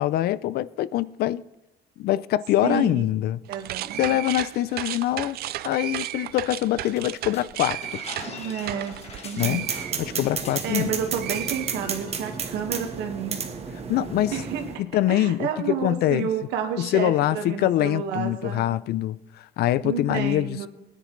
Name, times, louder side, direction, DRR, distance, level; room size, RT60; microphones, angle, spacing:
voice 1, 0.0-1.4 2.0-3.4 4.0-5.4 5.6-8.0 9.4-9.7 10.0-10.9 13.9-14.4 14.9-16.3 16.8-20.7, left 13 dB, 70° left, 0.5 m, -24 dB
sound 1, 3.4-10.9 11.2-12.3, right 14 dB, 65° right, 0.4 m, -35 dB
voice 2, 3.5-4.1 8.2-9.0 9.2-9.7 10.6-13.5 14.3-14.6 15.1-18.6 19.8-20.7, right 7 dB, 85° right, 1.7 m, -30 dB
sound 2, 6.9-11.1 11.4-11.5 11.8-12.2, left 4 dB, 40° left, 1.7 m, -42 dB
sound 3, 9.4-14.8, right 5 dB, 40° right, 1.4 m, -32 dB
20.0 x 10.0 x 3.2 m
cardioid pair, 110°, 17 cm